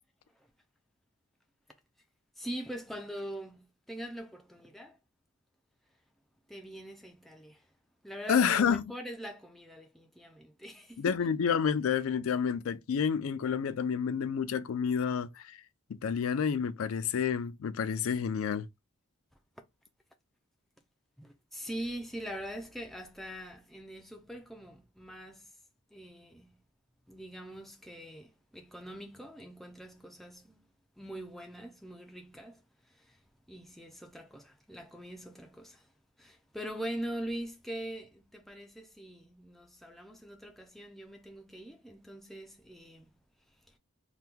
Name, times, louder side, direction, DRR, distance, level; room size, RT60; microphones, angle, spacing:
voice 1, 2.4-5.0 6.5-7.7 8.0-11.3 21.2-25.5 25.9-26.6 27.1-30.7 31.0-33.2 33.5-35.9 36.2-43.2 43.5-43.8, right 1 dB, ahead, 0.3 m, -43 dB
voice 2, 8.3-8.8 11.0-15.6 16.0-18.7, left 7 dB, 80° left, 0.4 m, -29 dB
2.9 x 2.2 x 3.4 m
head